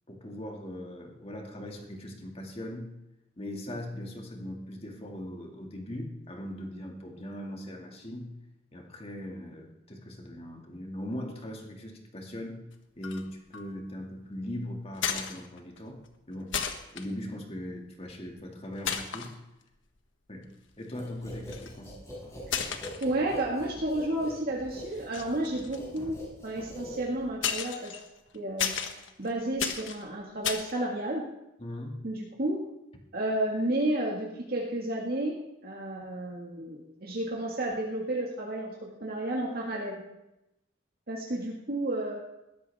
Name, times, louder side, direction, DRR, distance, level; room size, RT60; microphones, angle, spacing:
voice 1, 0.1-2.9 3.4-8.3 8.7-12.6 13.0-16.0 16.3-16.6 16.9-19.3 20.3-20.5 20.8-22.0 31.6-32.0, left 1 dB, 30° left, 1 dB, 2.3 m, -40 dB
sound 1, 13.0-13.3 13.5-13.9 15.0-16.1 16.5-17.0 18.1-18.4 18.8-19.3 20.0-20.1 21.3-21.8 22.4-23.7 24.0-24.4 24.9-26.9 27.4-30.7, left 7 dB, 85° left, 1.4 m, -34 dB
sound 2, 20.9-27.4, equal, 15° left, 5.3 m, -44 dB
voice 2, 23.0-26.2 26.4-28.0 28.3-28.7 29.2-31.2 32.0-32.6 33.1-40.0 41.1-42.2, right 1 dB, 55° right, -3 dB, 1.9 m, -31 dB
20.5 x 14.0 x 3.6 m, 0.89 s
head